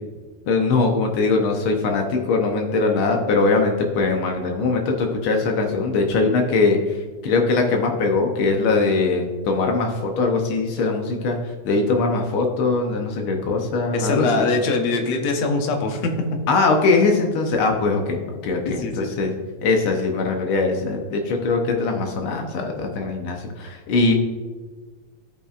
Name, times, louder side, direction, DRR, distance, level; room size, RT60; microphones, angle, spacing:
voice 1, 0.5-7.0 7.2-11.4 11.6-14.5 16.5-18.2 18.4-19.3 19.6-24.1, left 3 dB, 85° left, 2 dB, 1.1 m, -21 dB
voice 2, 13.9-16.1 18.7-19.1, left 3 dB, 70° left, 4 dB, 2.0 m, -22 dB
14.5 x 5.6 x 2.4 m, 1.4 s
omnidirectional pair, 3.4 m